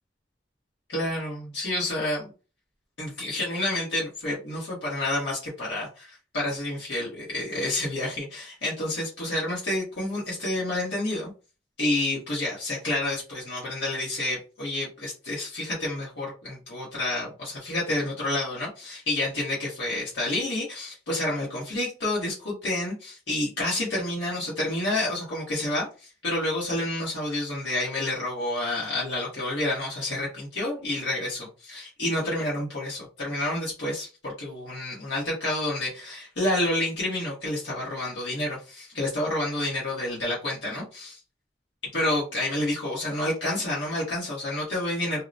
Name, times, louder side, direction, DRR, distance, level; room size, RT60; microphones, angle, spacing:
voice 1, 0.9-2.3 3.0-11.3 11.8-41.2 41.9-45.2, left 1 dB, 70° left, -6 dB, 1.1 m, -29 dB
2.7 x 2.1 x 2.5 m, 0.33 s
head